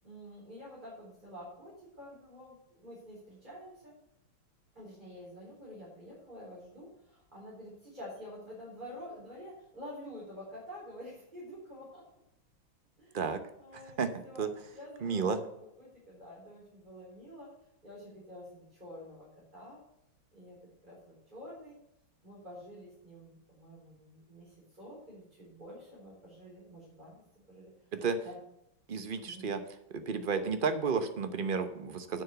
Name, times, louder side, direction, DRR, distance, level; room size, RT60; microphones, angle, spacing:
voice 1, 0.0-3.9 4.7-12.0 13.0-13.2 13.6-14.4 14.7-17.5 17.8-19.8 20.3-20.6 20.8-21.8 22.2-27.2 27.5-27.7 28.2-28.4 29.2-29.5, equal, 20° right, -7 dB, 4.5 m, -48 dB
voice 2, 13.7-14.1 14.4-14.5 15.0-15.4 28.0-28.2 28.9-29.6 29.9-32.2, right 5 dB, 45° right, 9 dB, 0.6 m, -32 dB
9.7 x 6.3 x 8.1 m, 0.79 s
omnidirectional pair, 2.2 m